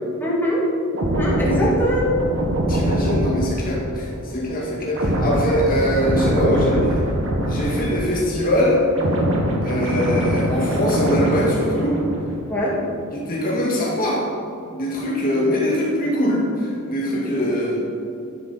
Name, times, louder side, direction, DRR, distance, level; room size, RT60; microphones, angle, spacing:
voice 1, 0.2-0.6 1.0-2.1 12.5-12.8, equal, 10° left, -6 dB, 2.8 m, -22 dB
sound 1, 0.9-8.4 8.7-12.4 12.7-13.0, equal, 65° right, 1.9 m, -23 dB
voice 2, 2.7-7.0 7.5-8.8 9.6-12.0 13.1-14.2 14.6-17.8, equal, 40° left, -4 dB, 2.0 m, -22 dB
12.5 x 10.5 x 4.3 m, 2.6 s
head